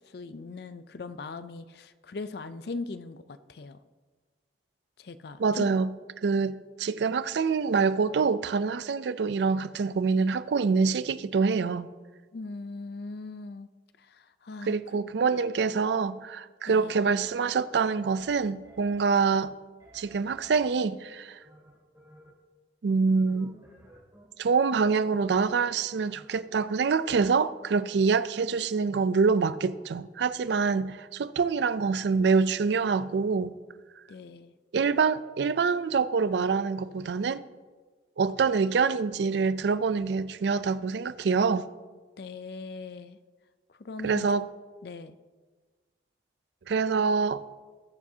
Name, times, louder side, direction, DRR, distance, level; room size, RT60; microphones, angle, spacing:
voice 1, 0.1-3.8 5.0-5.8 12.3-13.7 14.0-14.7 16.6-17.0 34.1-34.5 42.2-43.2 43.7-44.3 44.8-45.2, left 3 dB, 60° left, 0.5 m, -40 dB
voice 2, 5.4-5.9 6.2-11.9 14.6-19.5 19.9-21.4 22.8-23.5 24.4-33.5 34.7-37.4 38.2-41.7 44.0-44.5 46.7-47.4, right 5 dB, 70° right, 0.4 m, -25 dB
sound 1, 17.2-17.3 18.1-19.0 19.8-20.6 21.4-22.3 23.1-24.2 24.6-25.5 26.1-26.4, equal, 20° right, 3.4 m, -55 dB
19.5 x 7.3 x 2.8 m
head